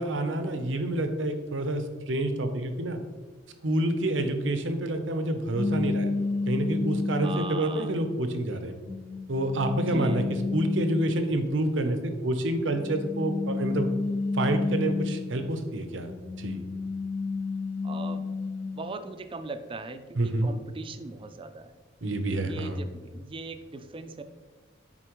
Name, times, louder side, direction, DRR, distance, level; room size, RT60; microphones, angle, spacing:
voice 1, 0.0-3.0 3.6-6.1 6.5-8.8 9.3-10.2 10.5-13.9 14.3-16.1 16.4-16.6 20.2-20.5 22.0-22.8, right 1 dB, 80° right, 7 dB, 0.7 m, -28 dB
sound 1, 5.5-7.7 8.4-11.5 12.6-15.6 16.0-19.0, left 3 dB, 35° left, 0.4 m, -31 dB
voice 2, 7.2-7.9 9.9-10.2 17.8-18.3 18.7-21.8 22.3-24.2, right 3 dB, 30° right, 9 dB, 0.4 m, -39 dB
9.9 x 4.2 x 3.1 m, 1.3 s
head